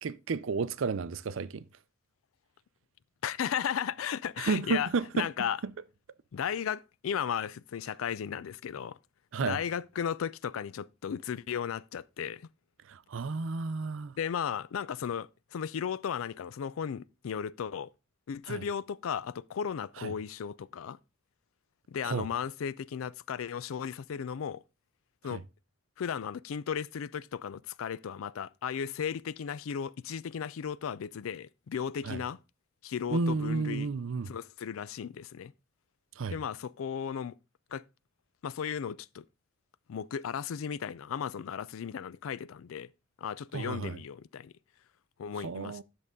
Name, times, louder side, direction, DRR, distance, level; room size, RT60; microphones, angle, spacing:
voice 1, 0.0-1.7 4.4-5.3 9.3-9.6 12.9-14.2 18.5-18.6 20.0-20.1 22.0-22.3 25.3-25.4 32.0-32.2 33.1-34.3 36.2-36.4 43.5-44.0 45.4-45.8, right 4 dB, 70° right, 0.5 m, -32 dB
voice 2, 3.2-5.6 6.3-9.0 9.4-12.5 14.2-17.9 18.3-21.0 21.9-24.6 25.2-25.4 26.0-32.4 32.8-33.9 34.3-35.5 36.3-37.4 37.7-37.8 38.4-39.2 39.9-42.9 43.2-44.5 45.2-45.8, left 7 dB, 85° left, 0.4 m, -35 dB
10.5 x 6.7 x 3.6 m
head